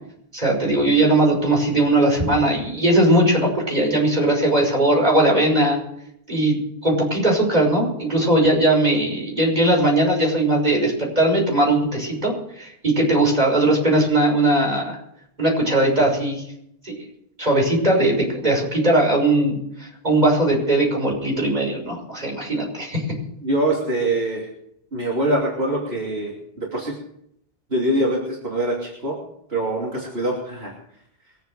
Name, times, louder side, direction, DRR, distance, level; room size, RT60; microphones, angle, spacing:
voice 1, 0.3-5.8 6.3-6.6 6.8-15.0 15.4-16.4 16.8-16.9 17.4-23.1, right 1 dB, 40° right, 0 dB, 6.0 m, -19 dB
voice 2, 23.4-24.5 24.9-26.9 27.7-29.2 29.5-30.7, right 1 dB, 75° right, -3 dB, 3.2 m, -24 dB
23.0 x 8.1 x 6.7 m, 0.74 s
omnidirectional pair, 1.0 m